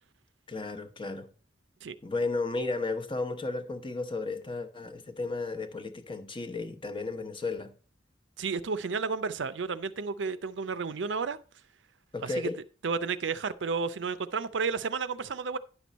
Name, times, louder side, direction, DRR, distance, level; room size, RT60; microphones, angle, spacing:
voice 1, 0.5-1.3 2.0-7.7 12.1-12.6, left 3 dB, 30° left, 0.9 m, -34 dB
voice 2, 8.4-11.4 12.2-12.5 12.8-15.6, right 5 dB, 80° right, 0.6 m, -32 dB
10.0 x 6.1 x 4.1 m
head